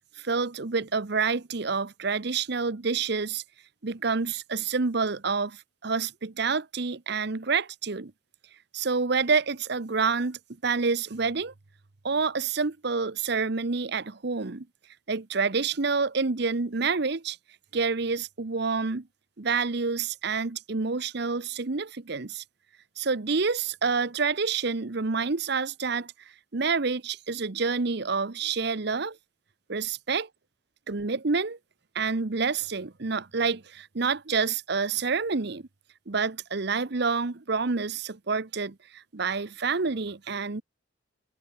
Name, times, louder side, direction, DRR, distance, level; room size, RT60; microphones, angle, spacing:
voice 1, 0.2-3.4 3.8-8.1 8.7-11.5 12.0-14.7 15.1-17.4 17.7-19.0 19.4-22.4 23.0-26.1 26.5-29.2 29.7-30.3 30.9-31.6 31.9-35.6 36.1-40.6, right 4 dB, 55° right, 0.9 m, -28 dB
head